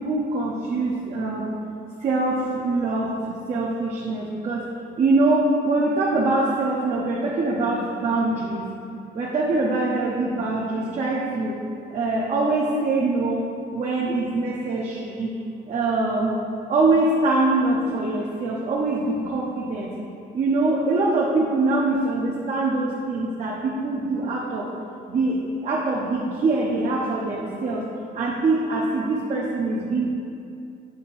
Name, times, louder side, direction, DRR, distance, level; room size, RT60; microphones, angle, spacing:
voice 1, 0.0-1.6 2.0-4.6 5.0-8.7 9.1-11.6 11.9-13.4 13.7-15.3 15.7-16.3 16.7-19.9 20.3-24.7 25.1-27.9 28.1-30.1, right 2 dB, 45° right, -4 dB, 0.8 m, -23 dB
7.0 x 6.3 x 2.6 m, 2.6 s
cardioid pair, 110°, 17 cm